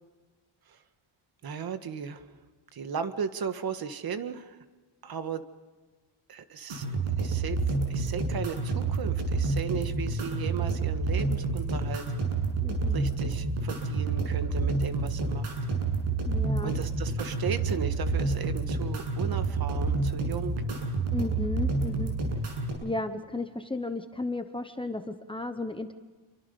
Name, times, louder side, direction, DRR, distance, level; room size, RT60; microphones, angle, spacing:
voice 1, 1.4-2.2 2.7-4.6 5.0-5.4 6.3-12.0 12.9-15.5 16.6-20.6, right 6 dB, 45° right, 9 dB, 1.6 m, -36 dB
sound 1, 6.7-22.7, right 3 dB, 80° right, 7.4 m, -29 dB
voice 2, 12.6-13.0 16.3-16.7 21.1-22.1 22.8-25.9, left 2 dB, 10° left, 7 dB, 1.0 m, -34 dB
28.0 x 24.5 x 5.4 m, 1.4 s
wide cardioid pair, 175°, 49 cm